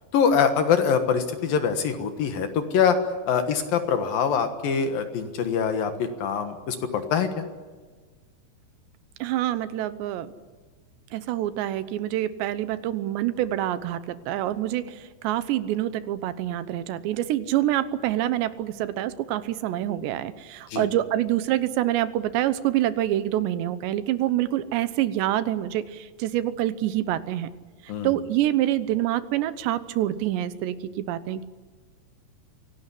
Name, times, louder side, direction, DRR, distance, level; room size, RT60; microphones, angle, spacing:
voice 1, 0.1-3.0 3.3-7.4 20.7-20.9 27.9-28.1, left 7 dB, 65° left, 7 dB, 2.9 m, -24 dB
voice 2, 9.2-10.3 11.1-27.5 27.8-31.4, right 13 dB, 80° right, 13 dB, 3.2 m, -26 dB
25.0 x 18.0 x 10.0 m, 1.4 s
omnidirectional pair, 5.0 m